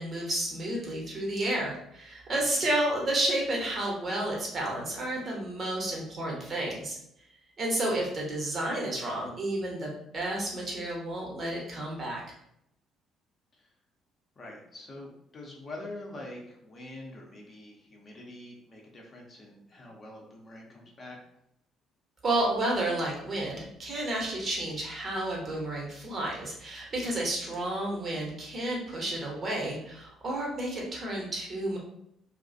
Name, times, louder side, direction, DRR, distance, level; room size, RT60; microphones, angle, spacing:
voice 1, 0.0-7.0 7.6-12.2 22.2-31.8, right 1 dB, 40° right, -2 dB, 0.9 m, -31 dB
voice 2, 14.4-21.2, left 2 dB, 40° left, -2 dB, 0.7 m, -45 dB
2.3 x 2.1 x 2.6 m, 0.74 s
figure-of-eight pair, 45°, 0 cm